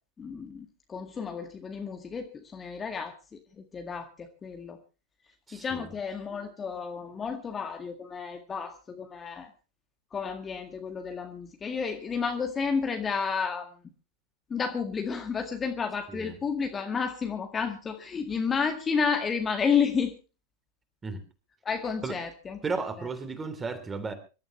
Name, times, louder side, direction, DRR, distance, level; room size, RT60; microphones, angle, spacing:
voice 1, 0.2-3.1 3.6-4.8 5.5-9.5 10.1-13.7 14.5-20.2 21.7-22.6 23.0-23.1, left 6 dB, 20° left, 5 dB, 2.0 m, -31 dB
voice 2, 5.5-5.9 16.1-16.4 21.0-21.2 22.0-22.1 22.6-24.1, right 4 dB, 15° right, 9 dB, 3.4 m, -34 dB
26.0 x 13.0 x 3.2 m, 0.33 s
figure-of-eight pair, 90°, 0 cm